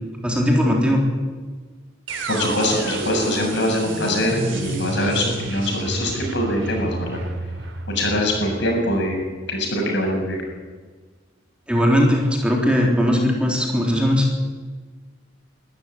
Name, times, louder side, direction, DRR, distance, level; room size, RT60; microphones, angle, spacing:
voice 1, 0.2-1.0 11.7-14.5, equal, 5° right, -1 dB, 3.7 m, -19 dB
sound 1, 2.1-10.0, right 2 dB, 75° right, 3.3 m, -31 dB
voice 2, 2.3-7.2 7.9-10.4, left 1 dB, 65° left, 1 dB, 7.5 m, -23 dB
22.0 x 14.0 x 10.0 m, 1.4 s
head